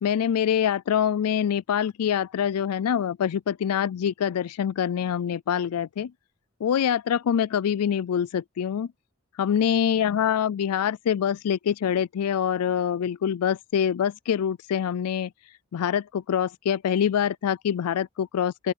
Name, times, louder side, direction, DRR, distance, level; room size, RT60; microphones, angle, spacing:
voice 1, 0.0-6.1 6.6-8.9 9.4-15.3 15.7-18.7, left 8 dB, 90° left, 0.4 m, -25 dB
open air
head